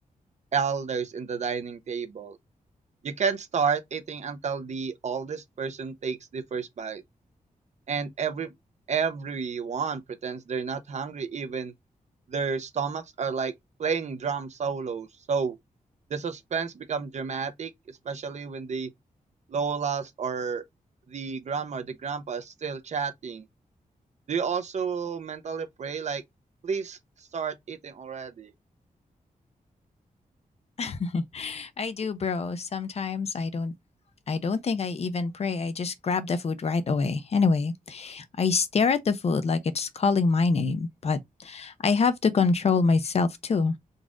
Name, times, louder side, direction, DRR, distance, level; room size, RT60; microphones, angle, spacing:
voice 1, 0.5-2.4 3.0-7.0 7.9-8.5 8.9-11.7 12.3-13.5 13.8-15.6 16.1-17.7 18.0-18.9 19.5-20.6 21.1-23.5 24.3-26.2 26.6-27.0 27.3-28.5, right 6 dB, 55° right, 0.7 m, -31 dB
voice 2, 30.8-33.7 34.3-43.7, left 4 dB, 45° left, 0.6 m, -26 dB
4.0 x 2.4 x 3.6 m
wide cardioid pair, 165°, 14 cm